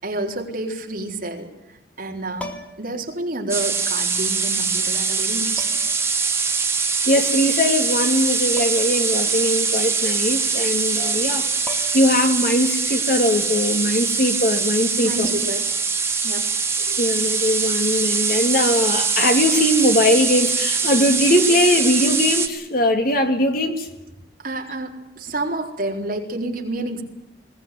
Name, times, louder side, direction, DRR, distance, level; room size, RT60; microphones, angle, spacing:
voice 1, 0.0-5.8 15.0-15.6 16.2-16.5 24.4-27.0, right 2 dB, 55° right, 1 dB, 4.1 m, -29 dB
sound 1, 2.4-3.0 4.3-4.4 5.6-6.0 8.6-9.0 9.3-9.4 11.2-11.3 11.7-12.2 14.2-14.4, left 2 dB, 10° left, 2.5 m, -38 dB
sound 2, 3.5-22.5, right 5 dB, 15° right, 2.1 m, -22 dB
voice 2, 7.0-11.5 11.9-15.3 16.8-23.9, left 1 dB, 55° left, 5 dB, 3.0 m, -20 dB
21.0 x 18.5 x 9.5 m, 0.95 s
head